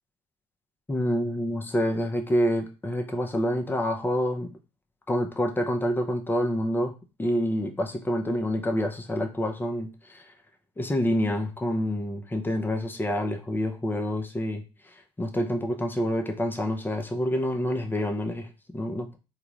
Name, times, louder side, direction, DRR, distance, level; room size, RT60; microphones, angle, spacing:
voice 1, 0.9-4.5 5.1-6.9 7.2-10.3 10.8-14.6 14.9-19.2, equal, 15° left, 4 dB, 0.8 m, -27 dB
3.7 x 2.3 x 3.1 m, 0.30 s
hypercardioid pair, 60°, 15 cm